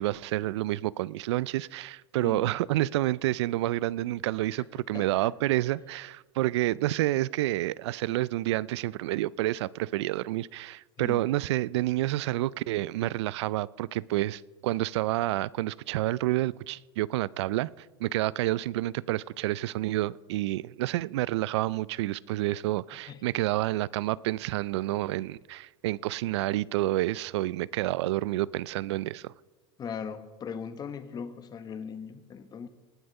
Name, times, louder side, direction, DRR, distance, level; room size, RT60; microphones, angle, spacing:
voice 1, 0.0-29.3, right 16 dB, 80° right, 0.4 m, -29 dB
voice 2, 4.9-5.3 11.0-11.2 23.1-23.2 29.8-32.7, left 6 dB, 30° left, 1.1 m, -39 dB
19.0 x 7.9 x 5.4 m
supercardioid pair, 120°, 14 cm